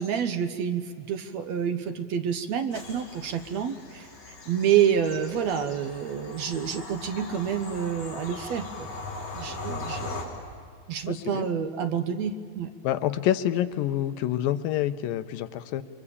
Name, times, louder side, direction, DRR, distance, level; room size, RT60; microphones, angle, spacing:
voice 1, 0.0-4.1 4.5-8.9 9.3-10.3 10.9-12.7, right 8 dB, 65° right, 9 dB, 1.8 m, -28 dB
Bird vocalization bird call bird song / Train, 2.7-10.2, left 3 dB, 60° left, 6.0 m, -39 dB
voice 2, 11.1-11.5 12.8-15.8, left 12 dB, 80° left, 11 dB, 2.5 m, -27 dB
29.0 x 23.5 x 8.6 m, 2.3 s
omnidirectional pair, 4.2 m